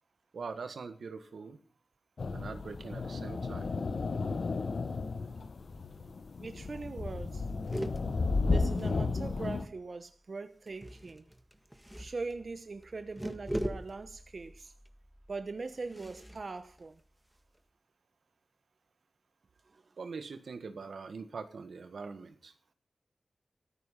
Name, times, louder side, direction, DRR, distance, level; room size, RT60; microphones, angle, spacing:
voice 1, 0.3-1.6 2.3-3.7 20.0-22.5, right 4 dB, 90° right, 1.7 m, -43 dB
sound 1, 2.2-9.7, left 3 dB, 75° left, 0.9 m, -33 dB
sound 2, 6.4-6.5 6.6-6.9 7.2-9.6 10.7-17.6, equal, 10° right, 1.6 m, -42 dB
voice 2, 6.4-7.5 8.4-11.2 12.0-14.7 15.3-17.0 19.6-19.9, right 3 dB, 60° right, 1.0 m, -41 dB
14.5 x 14.0 x 5.8 m
cardioid pair, 55°, 0 cm